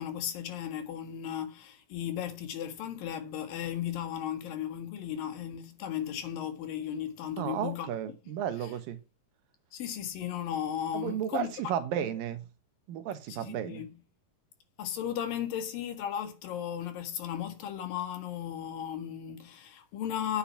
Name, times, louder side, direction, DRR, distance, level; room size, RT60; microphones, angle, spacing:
voice 1, 0.0-7.9 8.6-8.7 9.7-11.5 12.0-12.1 13.3-13.9 14.8-20.4, left 10 dB, 80° left, 3.5 m, -35 dB
voice 2, 7.4-9.0 10.9-12.4 12.9-13.8, right 10 dB, 80° right, 2.9 m, -33 dB
9.0 x 8.8 x 5.7 m
omnidirectional pair, 4.0 m